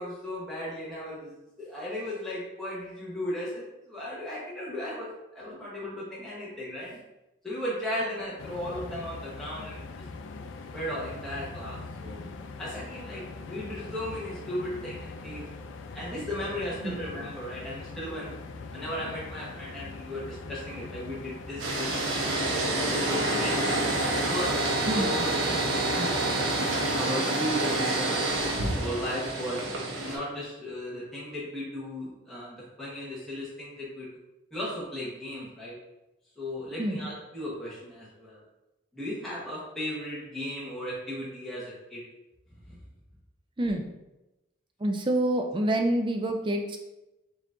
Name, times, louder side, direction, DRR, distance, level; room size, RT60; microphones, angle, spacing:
voice 1, 0.0-1.3 1.6-5.1 5.3-7.0 7.4-9.9 10.7-12.2 12.6-15.5 15.9-18.4 18.7-22.3 22.8-23.9 24.2-24.6 24.9-25.6 25.9-26.1 26.7-28.1 28.7-29.7 30.0-34.1 34.5-35.8 36.4-38.4 38.9-42.0 42.7-42.8, left 1 dB, ahead, -8 dB, 1.0 m, -36 dB
sound 1, 8.4-27.0, left 3 dB, 70° left, 0.4 m, -42 dB
sound 2, 21.6-30.2, right 2 dB, 85° right, 0.8 m, -27 dB
voice 2, 24.9-25.3 36.8-37.1 43.6-43.9 44.8-46.8, right 1 dB, 25° right, 4 dB, 0.4 m, -27 dB
4.5 x 2.6 x 3.6 m, 0.98 s
head